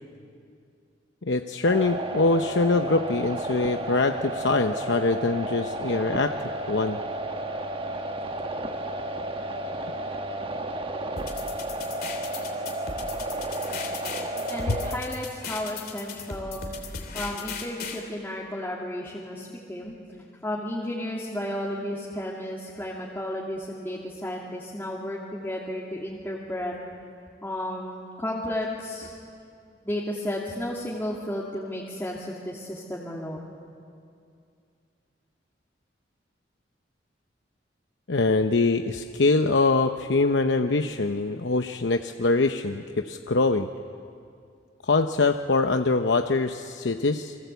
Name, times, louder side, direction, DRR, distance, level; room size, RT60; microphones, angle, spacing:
voice 1, 1.2-6.3 6.7-7.0 14.7-14.8 38.1-43.7 44.8-47.4, left 3 dB, 75° left, 6 dB, 0.8 m, -23 dB
sound 1, 1.6-15.0, right 1 dB, 30° right, 1.4 m, -32 dB
sound 2, 11.2-18.0, left 5 dB, 55° left, 3.2 m, -37 dB
voice 2, 14.5-16.9 17.1-26.7 27.4-29.1 29.8-33.4, left 1 dB, 10° left, -5 dB, 2.6 m, -33 dB
29.0 x 24.0 x 8.2 m, 2.4 s
head